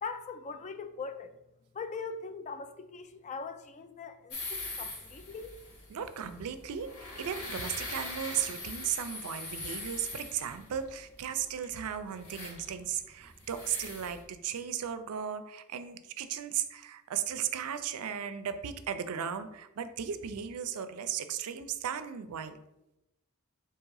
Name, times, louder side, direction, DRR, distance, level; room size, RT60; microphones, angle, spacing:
voice 1, 0.0-1.3 1.7-5.6, left 4 dB, 30° left, 0.3 m, -41 dB
sound 1, 4.3-14.2, left 2 dB, 90° left, 1.2 m, -42 dB
voice 2, 5.9-22.6, right 8 dB, 85° right, 0.4 m, -36 dB
3.6 x 2.8 x 4.7 m
head